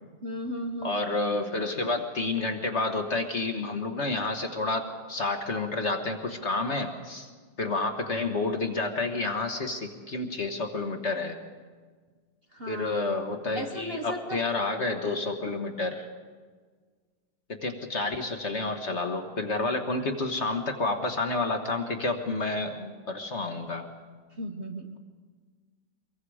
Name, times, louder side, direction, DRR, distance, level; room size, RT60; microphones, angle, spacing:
voice 1, 0.0-1.0 12.5-13.0 13.5-14.4 24.4-25.0, right 1 dB, 40° right, 3 dB, 1.0 m, -36 dB
voice 2, 0.8-7.3 7.6-11.4 12.7-16.1 17.6-23.9, left 3 dB, 40° left, 5 dB, 1.4 m, -30 dB
24.0 x 22.5 x 4.9 m, 1.6 s
omnidirectional pair, 2.0 m